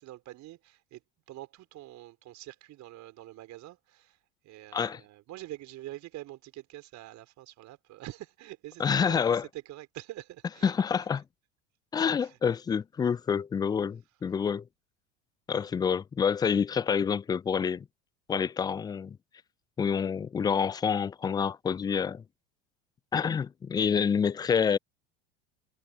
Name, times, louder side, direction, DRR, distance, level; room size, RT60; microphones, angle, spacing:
voice 1, 0.0-10.7 11.0-11.1 12.2-12.4, right 15 dB, 50° right, 4.4 m, -45 dB
voice 2, 8.8-9.4 10.6-11.2 11.9-14.6 15.5-17.9 18.3-19.2 19.8-22.2 23.1-24.8, left 7 dB, 10° left, 0.3 m, -27 dB
hypercardioid pair, 75°, 37 cm